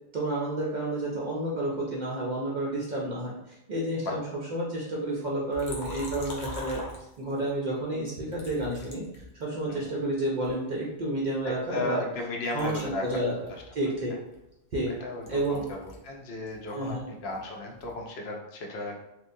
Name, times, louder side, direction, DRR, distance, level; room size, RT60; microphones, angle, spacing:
voice 1, 0.1-4.2 4.5-6.8 7.2-12.0 12.5-13.3 13.7-14.1 14.7-14.9 15.3-15.7 16.7-17.1, right 1 dB, 60° right, -4 dB, 0.5 m, -30 dB
Liquid, 5.5-7.5 8.3-9.9 10.4-12.2 12.4-16.1 16.4-18.0, left 1 dB, 85° left, 1.0 m, -44 dB
voice 2, 11.4-13.0 13.5-13.6 14.9-19.0, left 2 dB, 65° left, 1 dB, 0.7 m, -35 dB
2.9 x 2.1 x 2.5 m, 0.90 s
omnidirectional pair, 1.2 m